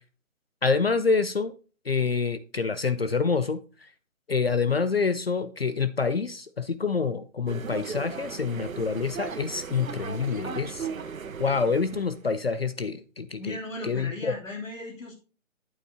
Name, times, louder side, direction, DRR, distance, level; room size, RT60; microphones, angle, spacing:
voice 1, 0.6-1.5 1.9-3.6 4.3-10.9 11.4-13.6 13.8-14.3, left 5 dB, 45° left, 0.5 m, -27 dB
sound 1, 7.5-12.2, right 6 dB, 75° right, 1.1 m, -37 dB
voice 2, 13.4-15.2, left 1 dB, 70° left, 3.1 m, -37 dB
8.6 x 8.2 x 2.7 m
hypercardioid pair, 170°, 41 cm